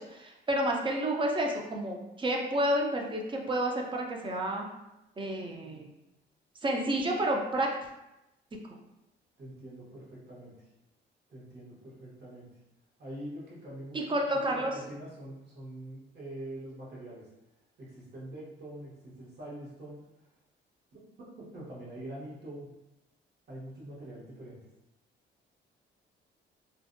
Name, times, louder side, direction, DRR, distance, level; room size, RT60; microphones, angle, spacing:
voice 1, 0.0-4.7 5.2-5.9 6.6-7.7 13.9-14.7, right 1 dB, 25° right, 0 dB, 0.5 m, -30 dB
voice 2, 9.4-10.7 11.3-12.5 13.0-17.3 17.8-20.0 20.9-22.7 23.5-24.6, right 1 dB, 55° right, -5 dB, 1.1 m, -44 dB
2.5 x 2.1 x 2.5 m, 0.92 s
cardioid pair, 90°, 20 cm